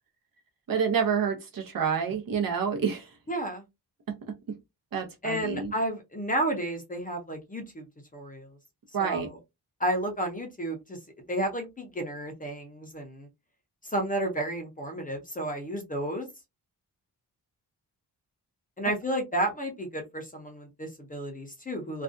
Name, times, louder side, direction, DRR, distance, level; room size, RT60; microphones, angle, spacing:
voice 1, 0.7-3.2 4.1-4.6 4.9-5.7 8.9-9.3, right 6 dB, 55° right, 0.7 m, -28 dB
voice 2, 3.3-3.6 5.2-7.8 8.1-8.5 9.0-9.3 9.8-11.0 11.3-13.3 13.9-16.3 18.8-22.0, right 1 dB, 20° left, 0.5 m, -32 dB
2.5 x 2.2 x 2.4 m
wide cardioid pair, 165°, 41 cm